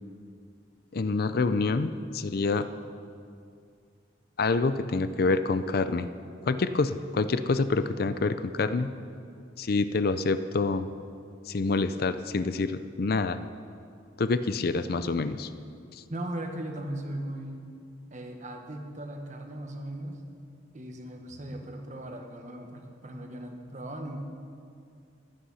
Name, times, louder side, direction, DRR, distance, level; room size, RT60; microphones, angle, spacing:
voice 1, 0.9-2.7 4.4-6.1 6.5-8.9 9.6-10.9 11.5-13.4 14.2-15.5 15.9-16.0, left 3 dB, 55° left, 12 dB, 0.5 m, -27 dB
voice 2, 16.1-17.7 18.1-20.2 20.7-24.2, right 1 dB, 40° right, 4 dB, 1.3 m, -38 dB
15.5 x 11.5 x 5.6 m, 2.4 s
head